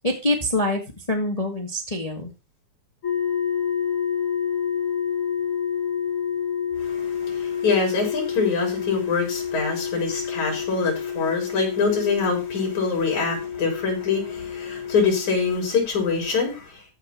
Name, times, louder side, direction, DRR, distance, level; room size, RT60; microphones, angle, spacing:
voice 1, 0.0-0.8 1.1-2.3, left 1 dB, 15° left, 4 dB, 1.5 m, -25 dB
sound 1, 3.0-15.5, left 8 dB, 45° left, 5.0 m, -28 dB
voice 2, 6.8-16.8, left 5 dB, 80° left, -1 dB, 5.7 m, -24 dB
14.0 x 5.3 x 6.0 m, 0.28 s
omnidirectional pair, 3.3 m